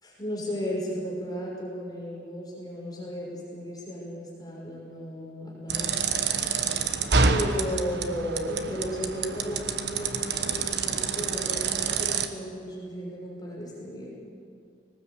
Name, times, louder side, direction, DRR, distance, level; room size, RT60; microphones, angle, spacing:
voice 1, 0.0-6.1 7.3-14.1, equal, 20° left, -4 dB, 5.7 m, -34 dB
sound 1, 5.7-12.3, right 5 dB, 65° right, 1.3 m, -27 dB
21.5 x 19.0 x 8.4 m, 2.3 s
head